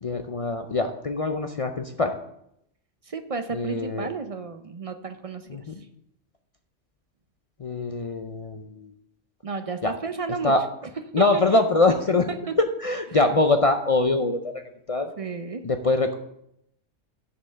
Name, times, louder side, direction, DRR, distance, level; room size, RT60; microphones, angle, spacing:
voice 1, 0.0-2.1 3.5-4.1 5.5-5.7 7.6-8.9 9.8-9.9 10.4-10.6 11.1-12.3 12.6-14.5 14.9-15.1 15.6-16.1, left 2 dB, 50° left, 6 dB, 0.4 m, -23 dB
voice 2, 3.0-5.7 9.4-10.5 11.2-11.6 12.5-12.6 13.1-13.3 15.2-15.6, right 4 dB, 55° right, 8 dB, 0.4 m, -32 dB
6.8 x 5.5 x 7.3 m, 0.76 s
omnidirectional pair, 1.3 m